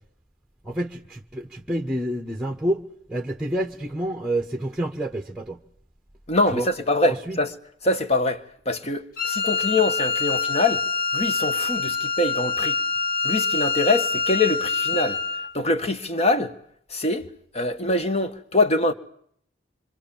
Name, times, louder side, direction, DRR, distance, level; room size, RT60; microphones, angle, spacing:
voice 1, 0.6-2.8 3.1-5.6 6.4-6.7 7.0-7.4, right 1 dB, 5° right, 1.2 m, -28 dB
voice 2, 6.3-7.5 7.8-10.9 11.1-12.8 13.2-15.2 15.5-16.5 16.9-17.3 17.5-18.9, left 2 dB, 35° left, 1.6 m, -24 dB
Wind instrument woodwind instrument, 9.2-15.5, left 4 dB, 55° left, 3.1 m, -25 dB
26.5 x 25.0 x 7.3 m
head